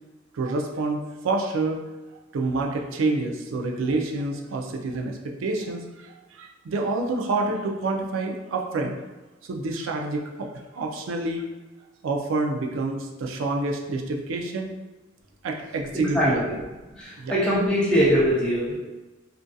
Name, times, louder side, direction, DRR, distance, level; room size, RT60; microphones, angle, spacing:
voice 1, 0.3-1.8 2.3-9.0 9.4-11.4 12.0-14.7 15.4-16.6 17.2-17.3, right 3 dB, 90° right, 2 dB, 0.4 m, -28 dB
voice 2, 17.0-18.8, equal, 5° left, -7 dB, 0.5 m, -22 dB
2.6 x 2.4 x 2.2 m, 1.1 s
head